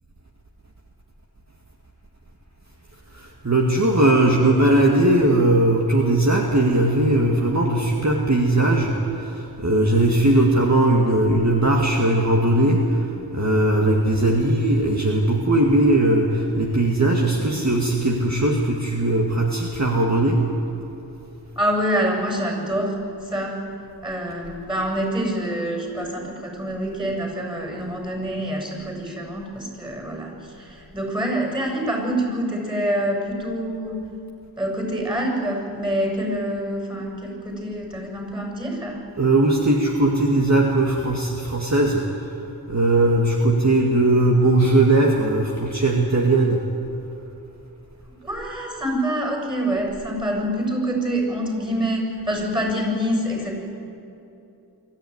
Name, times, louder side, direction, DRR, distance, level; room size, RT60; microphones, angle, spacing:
voice 1, 3.1-13.1 13.3-20.4 39.2-42.0 42.7-46.6, right 1 dB, 45° right, -1 dB, 2.1 m, -19 dB
voice 2, 21.6-23.0 23.2-23.6 24.0-34.0 34.6-39.0 48.2-53.6, equal, 10° right, 1 dB, 7.2 m, -26 dB
24.5 x 14.0 x 9.7 m, 2.8 s
wide cardioid pair, 45°, 39 cm